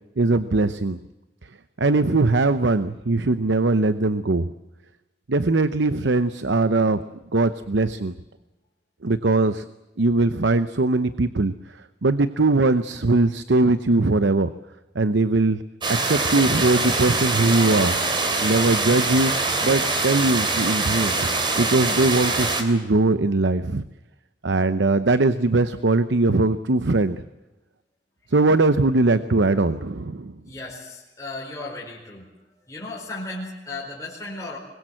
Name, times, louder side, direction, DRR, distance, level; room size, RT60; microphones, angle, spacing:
voice 1, 0.2-1.0 1.8-4.5 5.3-7.0 7.3-8.1 9.0-9.6 10.0-11.5 12.0-14.5 15.0-15.6 15.9-18.0 18.4-19.3 19.6-21.3 21.6-23.8 24.4-27.2 28.3-30.3, right 2 dB, 75° right, 12 dB, 0.8 m, -20 dB
sound 1, 15.8-22.6, right 3 dB, 25° right, 3.1 m, -24 dB
voice 2, 30.4-32.3 32.7-34.6, left 2 dB, 15° left, -4 dB, 4.8 m, -35 dB
24.5 x 21.5 x 7.6 m, 1.0 s
head